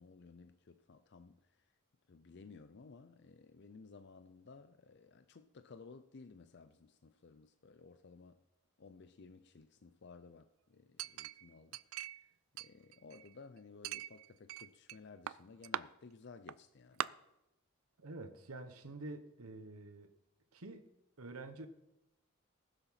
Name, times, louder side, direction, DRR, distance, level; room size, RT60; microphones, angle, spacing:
voice 1, 0.0-1.4 2.1-8.4 8.8-11.8 12.1-12.3 12.6-17.1, left 4 dB, 55° left, 0.5 m, -56 dB
Chink clink, 11.0-12.3 12.6-13.4 13.8-15.0 15.3-15.8 16.5-16.6 17.0-17.1, right 11 dB, 70° right, 0.4 m, -41 dB
voice 2, 18.0-20.1 20.5-20.9 21.2-21.7, right 2 dB, 90° right, 1.2 m, -48 dB
19.0 x 7.0 x 5.8 m
head